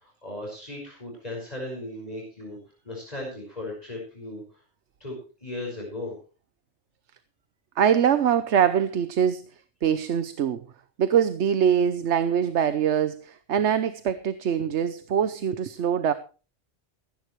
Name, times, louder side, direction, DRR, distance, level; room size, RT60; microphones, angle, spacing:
voice 1, 0.0-2.6 2.8-4.4 5.0-5.1 5.4-6.1, left 2 dB, 35° left, 5.7 m, -36 dB
voice 2, 7.8-9.5 9.8-10.6 11.0-16.1, right 8 dB, 80° right, 1.1 m, -23 dB
16.0 x 15.5 x 3.2 m
omnidirectional pair, 1.2 m